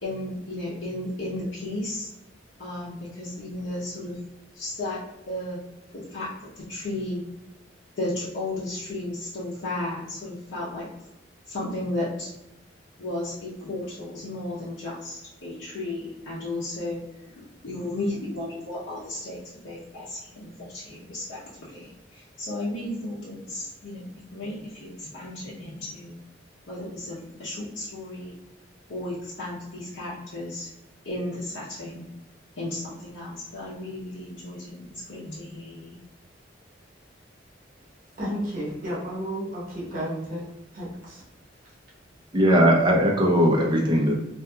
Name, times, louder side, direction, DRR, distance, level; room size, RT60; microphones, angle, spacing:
voice 1, 0.0-2.1 2.6-4.2 4.5-5.7 5.9-6.3 6.6-7.2 8.0-10.9 11.5-12.3 13.0-17.1 17.4-24.1 24.3-26.2 26.7-28.4 28.9-30.7 31.0-32.0 32.6-34.8 35.1-36.0, left 1 dB, 90° left, -9 dB, 0.7 m, -34 dB
voice 2, 38.2-40.4 40.7-41.2, equal, 50° right, -7 dB, 1.0 m, -32 dB
voice 3, 42.3-44.2, equal, 25° right, -1 dB, 0.5 m, -19 dB
2.7 x 2.5 x 2.3 m, 0.93 s
head